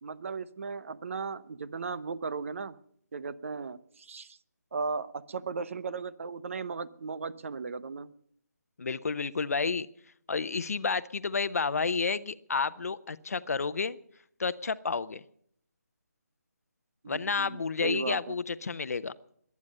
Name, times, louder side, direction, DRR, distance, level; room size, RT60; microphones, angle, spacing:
voice 1, 0.0-2.8 3.1-4.4 4.7-8.1 17.0-18.4, right 4 dB, 50° right, 16 dB, 0.9 m, -36 dB
voice 2, 8.8-9.9 10.3-14.0 14.4-15.2 17.1-19.1, left 4 dB, 60° left, 16 dB, 0.8 m, -30 dB
23.5 x 9.6 x 5.4 m, 0.65 s
figure-of-eight pair, 155°, 9 cm